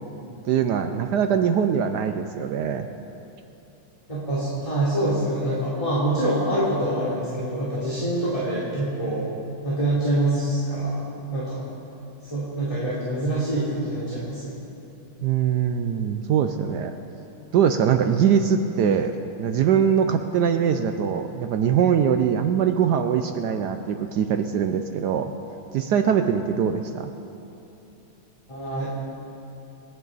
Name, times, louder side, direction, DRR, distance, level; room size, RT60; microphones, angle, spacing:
voice 1, 0.4-2.9 15.2-16.9 17.5-19.1 19.4-25.3 25.7-27.1, right 8 dB, 75° right, 7 dB, 0.9 m, -22 dB
voice 2, 4.1-9.3 9.6-11.0 11.3-11.6 12.3-14.6 28.5-28.9, right 1 dB, 15° left, -10 dB, 3.0 m, -25 dB
26.5 x 10.5 x 4.0 m, 2.9 s
omnidirectional pair, 2.4 m